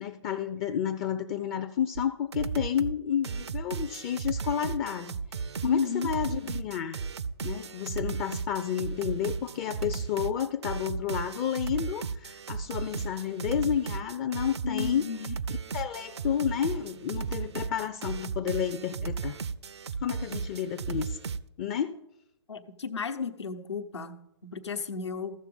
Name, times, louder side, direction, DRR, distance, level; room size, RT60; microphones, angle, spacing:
voice 1, 0.0-5.2 5.6-7.0 7.4-15.1 15.7-19.4 20.0-21.2 21.6-22.0, left 9 dB, 25° left, 8 dB, 0.5 m, -31 dB
sound 1, 2.0-2.1 2.3-3.0 3.2-21.4, right 5 dB, 70° right, 0.6 m, -35 dB
voice 2, 5.6-6.1 14.6-15.4 22.5-25.3, left 5 dB, 75° left, 5 dB, 1.1 m, -33 dB
14.5 x 6.9 x 5.4 m, 0.81 s
figure-of-eight pair, 130°, 15 cm